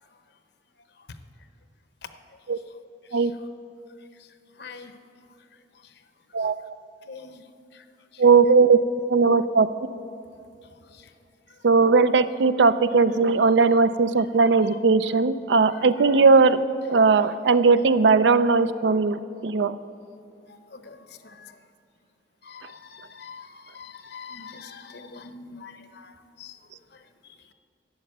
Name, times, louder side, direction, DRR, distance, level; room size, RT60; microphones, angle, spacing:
voice 1, 4.6-4.9 7.1-7.4 7.7-7.8 8.1-8.2 10.9-11.1 12.6-12.7 13.3-13.8 14.4-14.8 15.6-16.3 17.2-17.4 20.5-21.5 22.4-26.6 26.9-27.0, left 5 dB, 65° left, 9 dB, 0.8 m, -45 dB
voice 2, 8.2-8.8 9.1-9.7 11.6-16.6 16.9-19.8, right 4 dB, 75° right, 13 dB, 0.5 m, -18 dB
12.5 x 7.2 x 9.2 m, 2.6 s
head